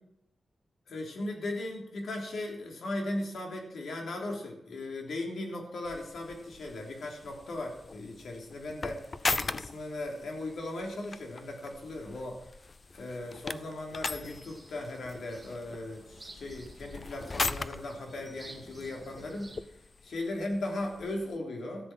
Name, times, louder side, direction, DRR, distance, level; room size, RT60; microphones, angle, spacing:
voice 1, 0.9-9.1 9.4-12.5 12.9-21.9, left 2 dB, 70° left, 1 dB, 3.3 m, -37 dB
sound 1, 5.8-21.4, left 3 dB, 30° left, 0.5 m, -40 dB
sound 2, 14.2-19.6, right 2 dB, 10° right, 2.0 m, -53 dB
14.0 x 7.9 x 7.3 m, 0.84 s
wide cardioid pair, 175°, 0 cm